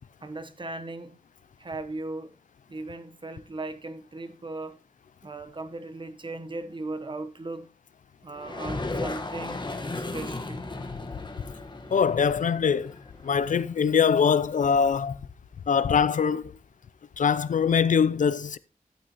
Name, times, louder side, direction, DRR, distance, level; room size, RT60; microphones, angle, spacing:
voice 1, 0.2-1.2 1.6-2.3 2.7-4.8 5.2-7.7 8.2-9.6 9.9-10.6, right 2 dB, 35° right, 1.0 m, -37 dB
sound 1, 8.4-14.0, left 2 dB, 30° left, 1.3 m, -36 dB
voice 2, 11.9-13.0 13.2-15.2 15.7-16.5 17.2-18.6, left 6 dB, 65° left, 0.4 m, -23 dB
12.0 x 8.7 x 3.0 m
wide cardioid pair, 115°, 14 cm